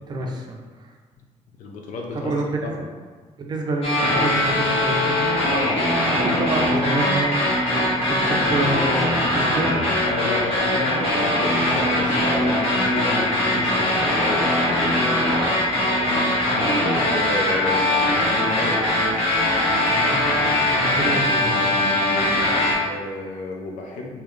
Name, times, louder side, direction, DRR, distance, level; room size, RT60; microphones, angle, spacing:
voice 1, 0.1-0.9 2.1-2.8 3.4-5.2 6.1-9.9 16.5-16.7 19.9-20.2 20.7-21.9, right 2 dB, 35° right, 1 dB, 0.5 m, -28 dB
voice 2, 1.6-2.3 2.6-2.9 10.1-14.6 16.0-18.8 20.8-21.2 22.5-24.2, left 3 dB, 85° left, 1 dB, 0.6 m, -32 dB
sound 1, 3.8-22.7, left 1 dB, 50° left, 1.1 m, -21 dB
3.7 x 2.8 x 3.2 m, 1.4 s
cardioid pair, 150°, 13 cm